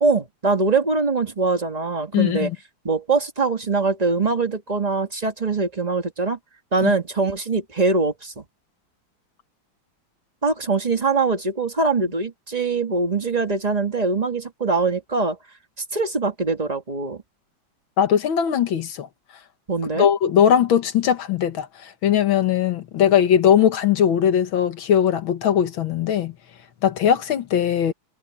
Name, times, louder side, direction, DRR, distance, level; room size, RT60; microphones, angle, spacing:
voice 1, 0.0-2.5 2.8-6.4 6.7-8.4 10.4-15.4 15.9-17.2 19.7-20.1, right 4 dB, 20° right, 1.4 m, -22 dB
voice 2, 2.1-2.6 6.8-6.9 18.0-19.1 20.0-26.3 26.8-27.9, left 9 dB, 90° left, 2.1 m, -19 dB
omnidirectional pair, 2.1 m